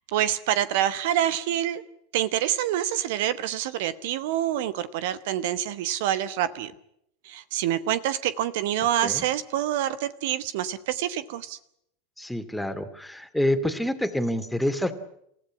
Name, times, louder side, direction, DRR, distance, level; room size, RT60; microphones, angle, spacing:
voice 1, 0.1-1.8 2.1-6.7 7.2-11.6, right 11 dB, 60° right, 15 dB, 1.1 m, -26 dB
voice 2, 12.2-14.9, left 1 dB, 5° left, 9 dB, 2.4 m, -27 dB
28.0 x 15.5 x 9.8 m, 0.75 s
figure-of-eight pair, 85°, 0 cm